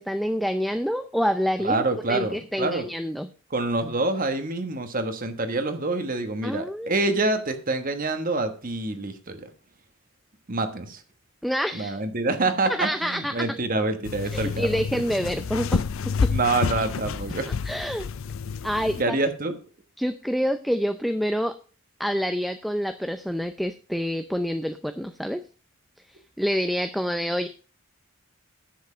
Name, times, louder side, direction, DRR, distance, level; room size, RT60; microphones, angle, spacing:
voice 1, 0.0-1.8 2.1-3.3 6.4-6.9 11.4-12.0 12.7-13.3 14.3-15.8 16.2-16.3 17.6-18.1 18.6-19.2 20.0-21.5 22.0-25.4 26.1-27.5, equal, ahead, 8 dB, 0.5 m, -27 dB
voice 2, 1.6-2.9 3.5-9.5 10.5-11.0 11.7-15.0 16.2-17.5 19.0-19.6, right 2 dB, 40° right, 8 dB, 1.3 m, -26 dB
sound 1, 14.0-19.0, left 5 dB, 65° left, 0.5 m, -29 dB
10.5 x 8.1 x 5.0 m, 0.37 s
head